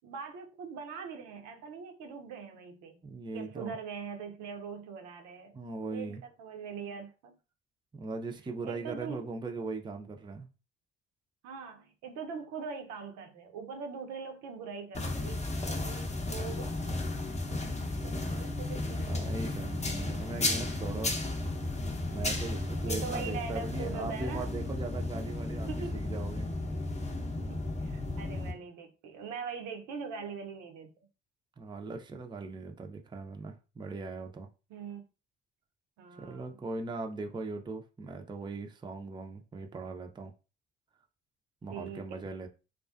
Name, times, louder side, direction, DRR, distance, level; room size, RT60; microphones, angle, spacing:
voice 1, 0.0-3.0 3.3-7.4 8.6-9.2 11.4-16.8 17.7-19.3 20.1-20.3 20.6-20.7 22.4-22.5 22.9-24.5 25.7-25.9 27.4-30.9 34.7-35.0 36.0-36.6 41.7-42.2, right 5 dB, 65° right, 0.6 m, -42 dB
voice 2, 3.0-3.8 5.5-6.2 7.9-10.5 17.6-18.2 19.1-21.2 22.1-26.5 31.6-34.5 36.2-40.3 41.6-42.5, right 3 dB, 15° right, 0.5 m, -39 dB
sound 1, 14.9-28.5, left 2 dB, 20° left, 0.7 m, -34 dB
2.4 x 2.2 x 2.4 m
hypercardioid pair, 50°, 31 cm